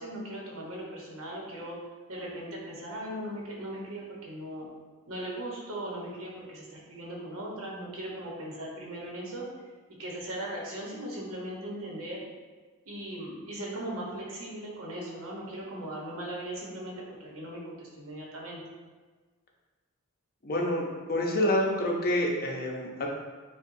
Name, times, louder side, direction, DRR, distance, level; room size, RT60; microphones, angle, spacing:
voice 1, 0.0-1.8 2.1-4.7 5.1-9.5 10.0-12.2 12.9-16.9 17.2-18.6, right 1 dB, 65° right, -4 dB, 1.1 m, -38 dB
voice 2, 20.4-20.8 21.1-23.1, left 1 dB, 45° left, -1 dB, 0.7 m, -27 dB
6.7 x 2.3 x 2.7 m, 1.4 s
head